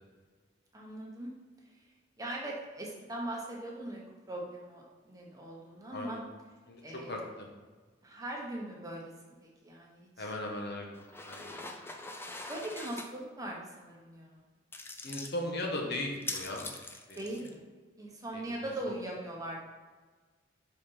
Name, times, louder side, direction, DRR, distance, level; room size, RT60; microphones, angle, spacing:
voice 1, 0.7-1.3 2.2-4.0 4.3-6.2 6.8-7.2 8.0-10.3 12.5-14.4 17.1-17.6 18.0-19.6, right 1 dB, 20° right, -2 dB, 1.1 m, -40 dB
voice 2, 5.9-6.2 6.7-6.8 7.1-7.2 10.2-10.9 11.2-11.4 15.0-16.6 17.1-17.2 18.3-18.4, left 1 dB, 60° left, 0 dB, 1.3 m, -36 dB
sound 1, 10.9-13.1 14.7-15.3 16.1-17.5, left 2 dB, 10° left, 0.5 m, -42 dB
5.1 x 4.1 x 5.6 m, 1.4 s
head